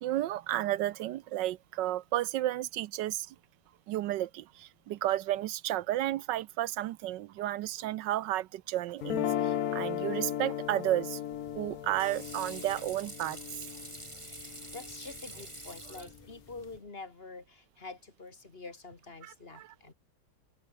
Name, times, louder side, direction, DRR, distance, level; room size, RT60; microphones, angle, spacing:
voice 1, 0.0-3.3 3.9-11.2 11.5-13.4 19.2-19.7, right 14 dB, 70° right, 1.1 m, -32 dB
sound 1, 9.0-15.1, left 10 dB, 55° left, 1.1 m, -36 dB
Water / Sink (filling or washing), 11.3-16.8, right 1 dB, 15° right, 3.3 m, -47 dB
voice 2, 14.4-19.9, left 3 dB, 30° left, 2.2 m, -47 dB
omnidirectional pair, 2.3 m